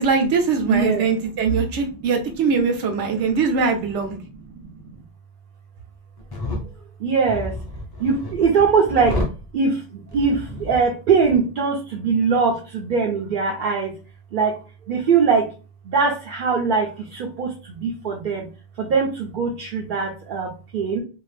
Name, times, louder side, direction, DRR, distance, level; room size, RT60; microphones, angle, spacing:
voice 1, 0.0-4.2, right 5 dB, 75° right, 3 dB, 1.0 m, -21 dB
voice 2, 0.7-1.0 4.5-4.9 7.0-7.5 8.0-9.2 9.5-13.9 14.3-14.6 14.9-15.5 15.8-18.5 18.8-21.0, right 5 dB, 55° right, -1 dB, 0.6 m, -21 dB
sound 1, 6.2-6.6 7.3-9.4 10.1-10.9 11.2-11.4, left 1 dB, 25° left, 0.6 m, -30 dB
2.6 x 2.4 x 3.2 m, 0.35 s
omnidirectional pair, 1.2 m